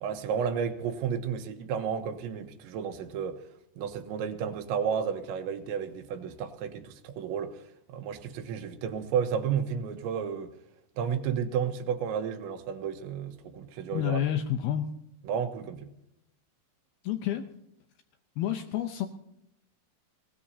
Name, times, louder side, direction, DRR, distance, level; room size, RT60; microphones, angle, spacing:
voice 1, 0.0-3.4 3.8-10.5 11.0-14.2 15.2-15.9, right 7 dB, 80° right, 3.3 m, -32 dB
voice 2, 13.9-14.9 17.0-17.5 18.4-19.1, left 10 dB, 85° left, 2.1 m, -29 dB
21.5 x 18.5 x 2.8 m
omnidirectional pair, 5.4 m